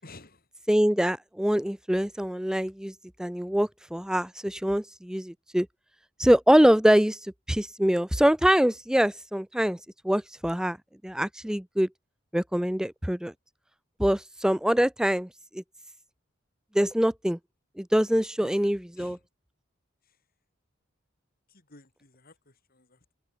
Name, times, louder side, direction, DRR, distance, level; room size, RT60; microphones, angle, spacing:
voice 1, 0.0-0.5 2.1-2.3 18.4-18.7 19.0-19.2 20.0-20.2 21.5-23.1, left 2 dB, 50° left, 7.8 m, -52 dB
voice 2, 0.7-2.9 3.2-5.7 6.2-9.8 10.0-10.8 11.0-11.9 12.3-13.3 14.0-15.3 15.5-15.6 16.7-17.4 17.8-19.2, equal, 5° right, 0.5 m, -24 dB
head